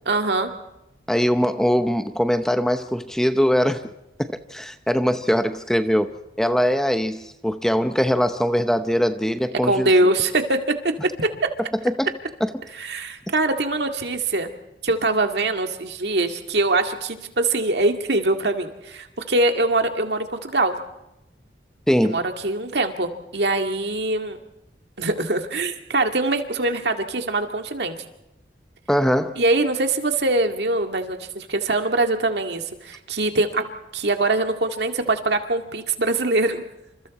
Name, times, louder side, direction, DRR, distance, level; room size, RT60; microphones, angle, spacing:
voice 1, 0.1-0.5 9.6-10.6 11.2-11.3 12.8-14.5 14.8-20.8 22.0-24.4 25.0-27.9 29.4-33.6 33.9-36.6, right 2 dB, 70° right, 2.1 m, -23 dB
voice 2, 1.1-3.9 4.2-10.1 11.8-12.1 12.4-12.5 21.9-22.2 28.9-29.3, equal, 5° left, 0.8 m, -22 dB
29.0 x 27.0 x 4.2 m
head